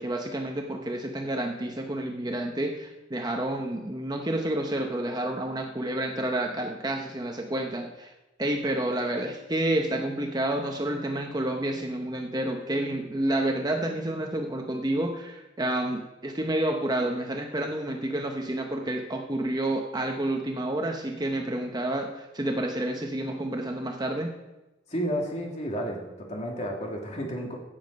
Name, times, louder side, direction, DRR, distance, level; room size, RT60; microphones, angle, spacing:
voice 1, 0.0-8.1 8.4-24.3, right 1 dB, 20° right, 3 dB, 0.8 m, -29 dB
voice 2, 24.9-26.0 26.3-27.6, equal, 35° left, 0 dB, 2.4 m, -31 dB
16.0 x 7.3 x 5.3 m, 1.0 s
head